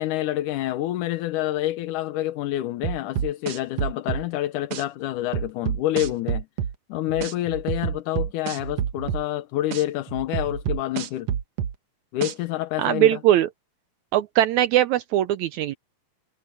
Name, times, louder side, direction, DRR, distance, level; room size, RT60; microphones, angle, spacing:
voice 1, 0.0-6.5 6.9-11.3 12.1-13.2, left 14 dB, 75° left, 2.3 m, -27 dB
sound 1, 2.8-4.2 4.7-4.8 5.3-6.7 7.2-7.3 7.7-9.2 9.7-9.8 10.3-11.7 12.2-12.3, right 8 dB, 65° right, 1.8 m, -27 dB
sound 2, 5.9-6.2 7.1-7.7 8.6-9.2 10.1-10.7, right 4 dB, 40° right, 5.3 m, -37 dB
voice 2, 12.8-13.5 14.1-15.7, right 12 dB, 80° right, 1.7 m, -20 dB
omnidirectional pair, 3.8 m